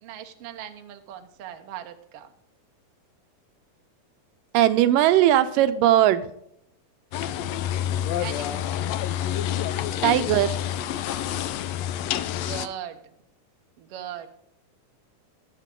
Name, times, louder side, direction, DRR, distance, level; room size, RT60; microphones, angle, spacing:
voice 1, 0.0-2.3 8.2-8.7 12.5-13.0 13.8-14.3, right 10 dB, 60° right, 6 dB, 1.7 m, -38 dB
voice 2, 4.5-6.2 10.0-10.6, right 12 dB, 85° right, 11 dB, 2.4 m, -19 dB
sound 1, 7.1-12.7, left 10 dB, 85° left, 1.5 m, -28 dB
20.5 x 7.4 x 3.7 m, 0.74 s
omnidirectional pair, 3.8 m